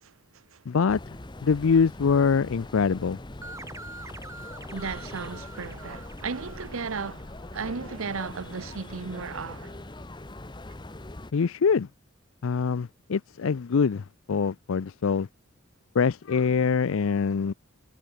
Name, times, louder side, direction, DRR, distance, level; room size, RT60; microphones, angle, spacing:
voice 1, 0.0-0.6 4.7-9.8, right 5 dB, 85° right, 0.9 m, -35 dB
voice 2, 0.7-1.2 1.4-3.2 11.3-11.9 12.4-15.3 15.9-17.5, left 5 dB, 80° left, 0.5 m, -24 dB
sound 1, 0.9-11.3, left 1 dB, 20° left, 1.0 m, -42 dB
sound 2, 3.4-7.7, right 2 dB, 15° right, 4.2 m, -46 dB
head